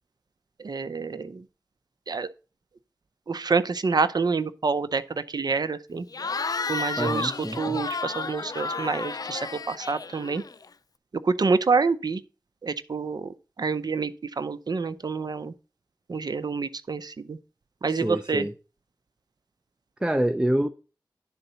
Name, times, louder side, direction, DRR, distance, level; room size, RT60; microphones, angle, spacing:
voice 1, 0.6-1.5 2.1-2.3 3.3-6.1 6.7-7.3 7.6-10.4 11.2-12.2 12.6-15.5 16.1-17.4 17.8-18.5, right 4 dB, 60° right, 0.6 m, -27 dB
Cheering / Crowd, 6.1-10.7, left 4 dB, 55° left, 0.4 m, -32 dB
voice 2, 7.0-7.8 17.9-18.5 20.0-20.7, right 1 dB, 10° right, 0.6 m, -26 dB
10.5 x 3.9 x 5.5 m
cardioid pair, 40°, 8 cm